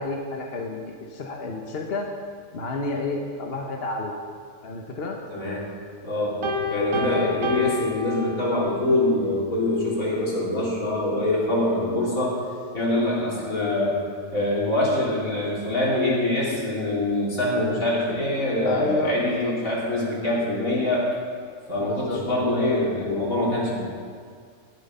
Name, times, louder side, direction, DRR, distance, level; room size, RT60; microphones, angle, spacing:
voice 1, 0.0-2.1 2.5-4.1 4.6-5.2 6.9-7.4 18.6-19.5 21.8-22.5, left 2 dB, 50° left, 1 dB, 1.3 m, -30 dB
voice 2, 5.3-5.7 6.0-6.4 6.7-12.4 12.7-14.0 14.3-21.0 21.7-23.8, left 1 dB, 80° left, -5 dB, 3.9 m, -24 dB
Piano, 6.4-8.8, left 3 dB, 70° right, 1.9 m, -29 dB
19.0 x 8.0 x 5.5 m, 2.1 s
omnidirectional pair, 1.4 m